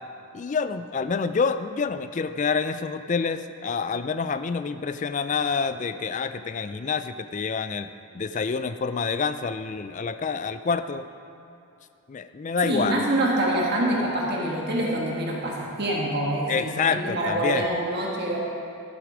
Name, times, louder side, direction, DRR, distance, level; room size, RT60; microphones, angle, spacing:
voice 1, 0.3-7.9 8.1-11.1 12.1-13.0 16.5-17.7, left 5 dB, 35° left, 11 dB, 0.3 m, -27 dB
voice 2, 12.6-18.4, right 1 dB, 45° right, -3 dB, 1.5 m, -26 dB
12.5 x 8.1 x 5.0 m, 2.5 s
head